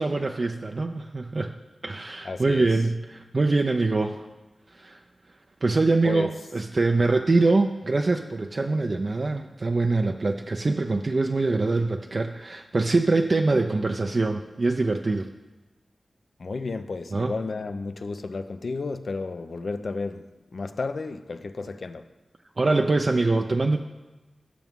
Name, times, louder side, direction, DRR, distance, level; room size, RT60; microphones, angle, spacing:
voice 1, 0.0-1.5 1.8-4.3 4.7-5.0 5.6-15.3 17.1-17.3 22.6-23.8, right 3 dB, 55° right, 0.5 m, -24 dB
voice 2, 2.2-2.7 6.0-6.3 16.4-20.2 20.5-22.0, left 3 dB, 70° left, 0.6 m, -32 dB
16.0 x 6.0 x 3.7 m
cardioid pair, 50°, 0 cm